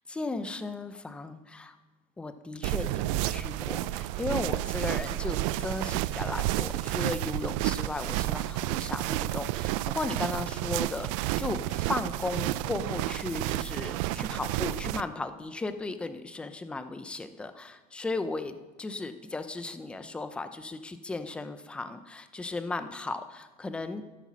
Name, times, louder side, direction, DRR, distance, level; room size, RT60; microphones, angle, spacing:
voice 1, 0.1-1.7 2.2-24.0, left 3 dB, 5° left, 11 dB, 0.4 m, -36 dB
sound 1, 2.6-15.0, right 16 dB, 60° right, 0.4 m, -31 dB
13.0 x 8.3 x 6.1 m, 1.2 s
cardioid pair, 175°, 19 cm